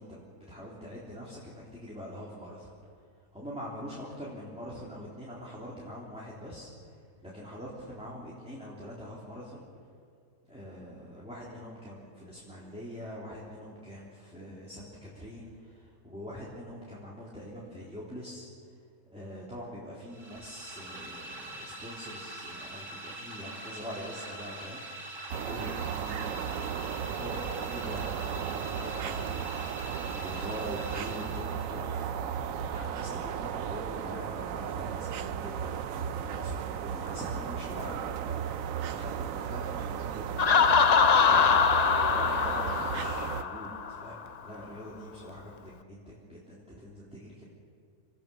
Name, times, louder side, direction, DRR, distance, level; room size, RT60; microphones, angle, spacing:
voice 1, 0.0-2.7 3.3-9.6 10.5-18.8 19.1-24.8 25.4-38.4 38.8-40.7 41.1-47.4, equal, 5° right, -6 dB, 3.4 m, -44 dB
sound 1, 20.1-32.0, right 2 dB, 50° right, 3.0 m, -43 dB
sound 2, 25.3-43.4, right 8 dB, 65° right, 1.1 m, -35 dB
Laughter, 40.4-44.1, left 6 dB, 60° left, 0.4 m, -23 dB
28.0 x 19.0 x 7.0 m, 2.2 s
omnidirectional pair, 1.6 m